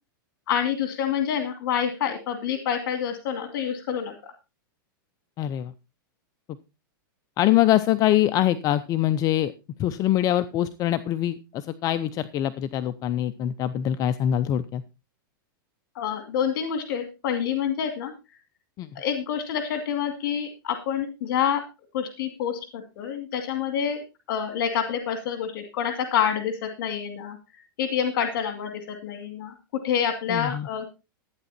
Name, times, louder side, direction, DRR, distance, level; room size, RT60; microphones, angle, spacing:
voice 1, 0.5-4.3 15.9-18.4 18.9-21.6 21.9-24.0 24.3-30.9, left 8 dB, 65° left, 6 dB, 2.3 m, -27 dB
voice 2, 5.4-5.7 7.4-9.5 9.8-14.8 18.8-18.9 30.3-30.7, left 12 dB, 30° left, 13 dB, 0.6 m, -24 dB
14.0 x 9.1 x 4.2 m, 0.29 s
supercardioid pair, 140°, 12 cm